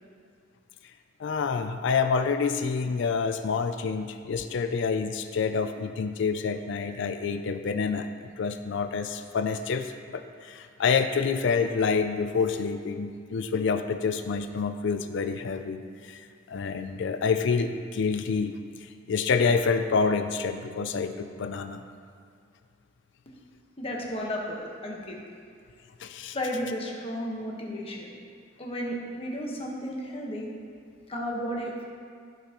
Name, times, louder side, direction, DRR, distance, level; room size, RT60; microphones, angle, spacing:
voice 1, 1.2-18.5 18.8-21.8 26.0-26.4, left 5 dB, 65° left, 8 dB, 0.4 m, -28 dB
voice 2, 23.8-25.2 26.3-28.1 28.6-30.5 31.1-31.9, equal, 30° left, -2 dB, 1.3 m, -33 dB
15.5 x 5.5 x 3.0 m, 2.3 s
head